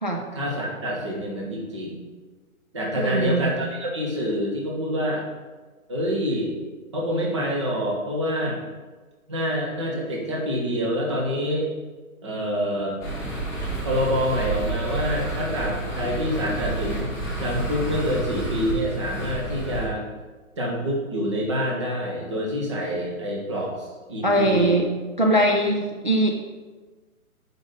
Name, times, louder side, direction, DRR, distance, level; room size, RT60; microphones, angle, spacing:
voice 1, 0.3-2.0 2.7-5.2 5.9-6.5 6.9-8.6 9.3-11.7 12.2-13.0 13.8-17.1 17.4-20.0 20.6-24.8, equal, 20° right, -2 dB, 0.8 m, -26 dB
voice 2, 3.0-3.6 24.2-24.9 25.2-26.3, right 1 dB, 35° right, 0 dB, 0.4 m, -21 dB
sound 1, 13.0-19.9, right 2 dB, 5° left, 1.8 m, -30 dB
5.9 x 5.2 x 4.0 m, 1.3 s
hypercardioid pair, 160°, 43 cm